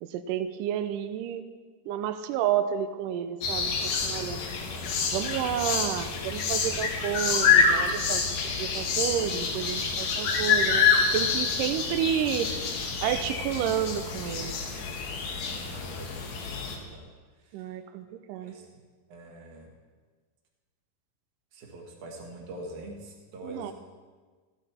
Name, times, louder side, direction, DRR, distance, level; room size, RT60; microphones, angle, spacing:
voice 1, 0.0-1.5 1.9-4.4 5.1-8.3 8.6-10.9 11.1-12.5 13.0-14.6 17.5-18.5 23.4-23.7, right 10 dB, 80° right, 9 dB, 2.0 m, -30 dB
sound 1, 3.4-16.8, left 5 dB, 80° left, 3.1 m, -27 dB
voice 2, 15.7-17.1 17.4-17.6 18.3-18.7 19.1-19.7 21.5-23.7, right 1 dB, 55° right, -1 dB, 3.1 m, -44 dB
14.5 x 11.0 x 4.3 m, 1.4 s
omnidirectional pair, 4.3 m